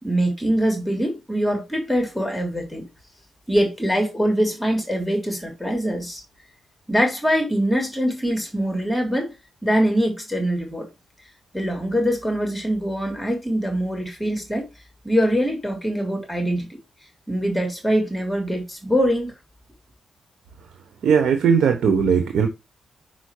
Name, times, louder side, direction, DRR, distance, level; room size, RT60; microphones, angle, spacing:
voice 1, 0.0-2.9 3.5-6.2 6.9-9.3 9.6-10.9 11.5-14.6 15.0-16.7 17.3-19.3, equal, 10° left, 3.2 m, -23 dB
voice 2, 21.0-22.5, right 6 dB, 80° right, 1.1 m, -18 dB
6.0 x 4.7 x 4.7 m
cardioid pair, 85°, 0 cm